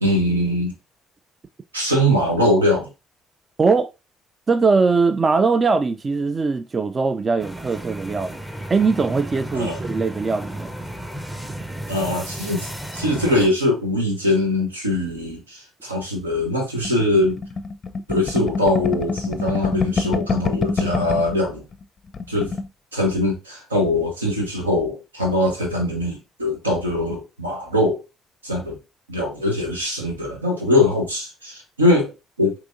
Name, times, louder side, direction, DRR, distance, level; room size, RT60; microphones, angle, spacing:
voice 1, 0.0-0.7 1.7-2.9 9.5-9.8 11.9-17.4 18.1-21.6 22.3-22.5 22.9-28.0 28.4-28.8 29.1-32.5, left 1 dB, 85° right, 0.9 m, -22 dB
voice 2, 3.6-3.9 4.5-8.4 8.7-10.7, right 4 dB, 30° right, 0.3 m, -20 dB
sound 1, 7.4-13.5, right 1 dB, 10° right, 0.7 m, -33 dB
sound 2, 16.8-21.4 21.7-21.8 22.1-22.7, left 4 dB, 40° left, 0.5 m, -25 dB
6.0 x 2.9 x 2.6 m
figure-of-eight pair, 45°, 0 cm